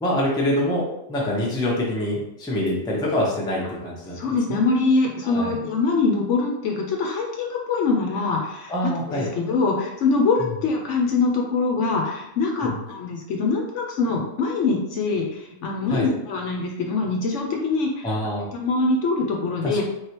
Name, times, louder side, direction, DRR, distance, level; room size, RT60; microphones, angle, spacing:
voice 1, 0.0-0.8 1.1-4.1 4.5-4.6 5.2-5.6 8.7-9.3 12.6-12.7 15.9-16.1 18.0-18.5 19.6-19.8, left 1 dB, 5° left, -4 dB, 0.6 m, -25 dB
voice 2, 4.1-18.2 18.5-19.8, left 3 dB, 70° left, 0 dB, 0.9 m, -24 dB
3.5 x 3.2 x 2.9 m, 0.88 s
omnidirectional pair, 1.4 m